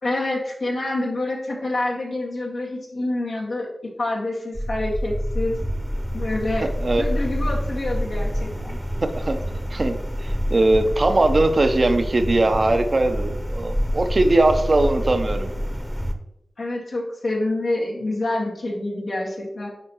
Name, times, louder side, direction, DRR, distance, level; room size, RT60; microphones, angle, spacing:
voice 1, 0.0-5.6 6.1-6.7 6.9-8.8 16.6-19.7, left 2 dB, 85° left, -4 dB, 1.9 m, -27 dB
sound 1, 4.5-16.1, equal, 5° left, 0.9 m, -27 dB
voice 2, 10.2-15.5, right 2 dB, 55° right, 7 dB, 0.7 m, -20 dB
9.2 x 4.3 x 3.0 m, 0.86 s
cardioid pair, 40°, 0 cm